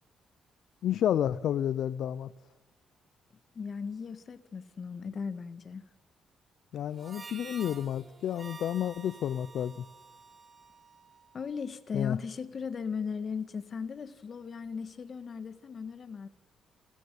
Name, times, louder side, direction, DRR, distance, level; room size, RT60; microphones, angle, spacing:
voice 1, 0.8-2.3 6.7-9.9 11.9-12.2, left 10 dB, 75° left, 0.6 m, -30 dB
voice 2, 3.5-5.8 11.3-16.3, left 5 dB, 45° left, 1.7 m, -37 dB
Harmonica, 6.9-11.5, right 4 dB, 30° right, 3.1 m, -50 dB
28.0 x 14.0 x 9.5 m
cardioid pair, 105°, 0 cm